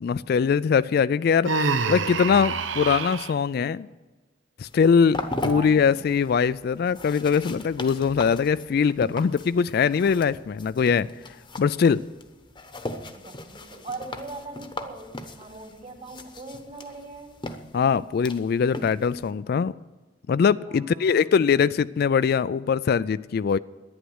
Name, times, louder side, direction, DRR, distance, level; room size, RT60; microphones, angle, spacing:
voice 1, 0.0-3.9 4.6-11.1 11.6-12.0 17.7-19.7 20.3-23.6, left 6 dB, 55° left, 17 dB, 0.3 m, -22 dB
Human voice, 1.4-3.3, right 4 dB, 90° right, 0.7 m, -26 dB
sound 1, 4.6-19.3, left 2 dB, 25° left, 0.9 m, -38 dB
voice 2, 5.4-5.8 13.1-17.3 20.7-21.3, right 3 dB, 40° right, 1 dB, 2.7 m, -40 dB
11.5 x 10.0 x 7.9 m, 1.2 s
head